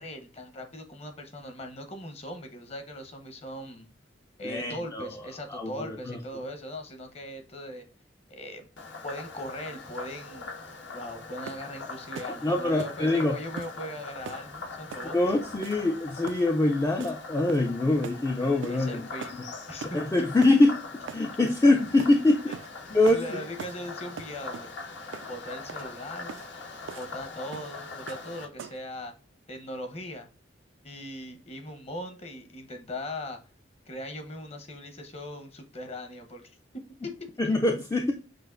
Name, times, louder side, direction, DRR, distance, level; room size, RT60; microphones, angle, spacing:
voice 1, 0.0-3.9 4.4-7.9 8.3-8.7 9.0-10.5 10.9-15.2 18.7-20.0 22.5-22.6 23.1-24.7 25.3-26.4 27.0-29.1 29.5-30.3 30.8-33.4 33.9-36.6 37.0-37.3, left 1 dB, 35° left, 6 dB, 0.9 m, -39 dB
voice 2, 4.4-5.1 5.5-6.2 12.3-13.4 15.1-19.0 19.3-19.4 19.8-20.8 21.1-22.4 22.9-23.4 37.4-38.1, left 2 dB, 15° left, 3 dB, 0.4 m, -24 dB
Frog, 8.8-28.5, left 3 dB, 70° left, 0.9 m, -42 dB
sound 1, 11.5-11.7 12.2-12.4 12.8-13.0 13.6-13.8 14.3-14.5 14.9-15.1 15.6-15.9 16.3-16.5 17.0-17.2 17.5-17.8 18.0-18.2 18.6-18.8 19.2-19.4 19.8-20.0 20.4-20.6 21.1-21.3 22.0-22.2 22.5-22.7 23.1-23.3 23.6-23.8 24.2-24.7 25.1-25.3 25.7-25.9 26.3-26.5 26.9-27.1 27.5-27.7 28.1-28.3 28.6-28.9, right 7 dB, 90° right, 0.3 m, -41 dB
6.1 x 2.5 x 2.4 m, 0.36 s
head